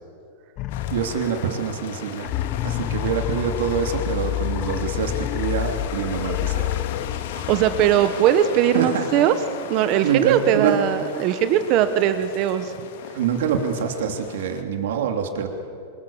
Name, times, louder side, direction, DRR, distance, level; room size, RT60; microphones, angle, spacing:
sound 1, 0.6-1.7 2.2-8.2, left 14 dB, 30° left, 0.7 m, -28 dB
sound 2, 0.7-14.6, left 9 dB, 50° left, 2.0 m, -37 dB
voice 1, 0.9-2.3 2.6-6.7 8.7-9.1 10.0-10.8 13.1-15.5, right 7 dB, 65° right, 4 dB, 3.0 m, -25 dB
voice 2, 7.5-9.3 9.7-12.7, right 10 dB, 30° right, 9 dB, 1.0 m, -20 dB
28.0 x 26.5 x 7.2 m, 2.4 s
supercardioid pair, 175°, 0 cm